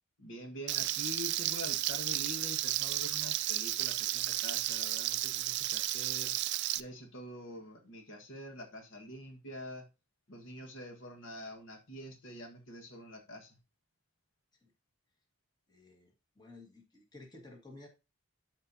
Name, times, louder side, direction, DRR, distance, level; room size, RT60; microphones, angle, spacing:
voice 1, 0.2-6.3 6.8-9.8 10.3-13.6, equal, 60° left, 3 dB, 1.6 m, -46 dB
Frying (food), 0.7-6.8, right 15 dB, 50° right, 0.4 m, -33 dB
voice 2, 15.7-17.9, left 2 dB, 20° left, 1 dB, 1.8 m, -54 dB
13.0 x 4.4 x 2.7 m, 0.29 s
head